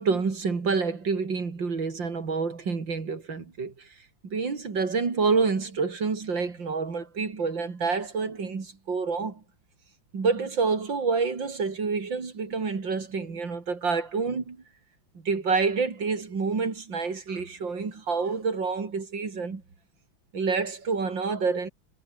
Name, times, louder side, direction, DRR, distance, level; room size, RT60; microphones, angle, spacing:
voice 1, 0.0-3.9 4.2-9.4 10.1-14.6 15.2-19.6 20.3-21.7, right 4 dB, 60° right, 3.9 m, -28 dB
omnidirectional pair, 2.4 m